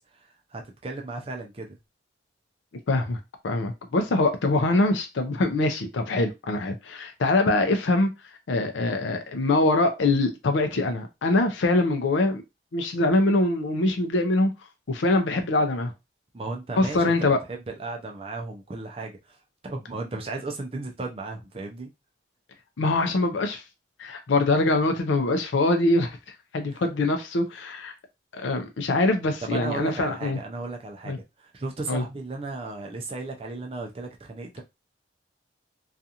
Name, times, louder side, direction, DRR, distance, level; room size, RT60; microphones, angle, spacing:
voice 1, 0.2-1.8 16.3-19.4 19.6-21.9 26.7-26.8 29.4-34.6, right 3 dB, 30° right, 0.4 m, -35 dB
voice 2, 2.9-3.2 3.4-8.1 8.5-12.4 12.7-14.5 14.9-15.9 16.8-17.4 22.8-23.6 24.0-26.2 26.5-27.9 28.3-30.4 31.1-31.2 31.9-32.0, left 2 dB, 90° left, 0.5 m, -23 dB
2.4 x 2.4 x 2.8 m
head